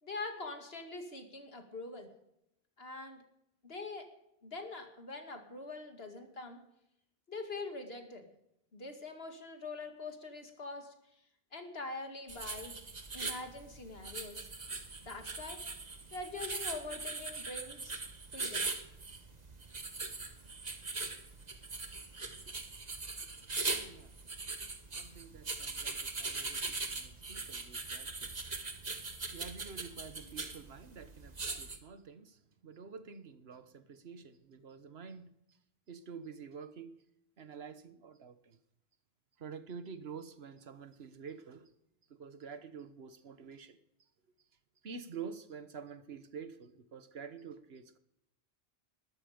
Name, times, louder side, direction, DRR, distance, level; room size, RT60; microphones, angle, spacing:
voice 1, 0.0-2.1 2.8-3.2 3.6-4.1 4.4-6.6 7.3-8.3 8.7-10.9 11.5-12.8 13.1-14.5 15.0-15.6 16.1-18.0 18.3-18.7, left 3 dB, 75° left, 5 dB, 2.4 m, -44 dB
sound 1, 12.3-31.8, right 3 dB, 40° right, 1.5 m, -41 dB
voice 2, 23.6-24.1 25.0-28.3 29.3-35.3 35.9-37.0 37.4-38.6 39.4-41.7 42.1-43.8 44.8-48.0, right 6 dB, 85° right, 12 dB, 1.4 m, -48 dB
20.5 x 12.5 x 5.1 m, 0.81 s
omnidirectional pair, 1.0 m